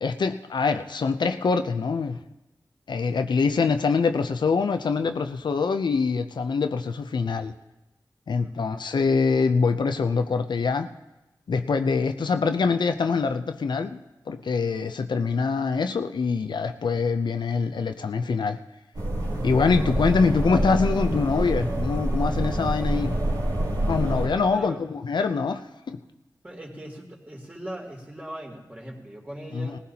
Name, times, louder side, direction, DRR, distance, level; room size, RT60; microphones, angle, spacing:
voice 1, 0.0-2.2 2.9-7.5 8.3-10.9 11.5-14.0 14.3-18.6 19.4-23.2 23.8-26.0 29.5-29.7, left 4 dB, 80° left, 8 dB, 0.6 m, -24 dB
voice 2, 8.4-8.8 24.0-24.9 26.4-29.8, right 1 dB, 20° right, -2 dB, 3.0 m, -39 dB
sound 1, 19.0-24.3, right 1 dB, 70° right, 3.9 m, -26 dB
19.0 x 15.5 x 2.9 m, 0.96 s
cardioid pair, 55°, 8 cm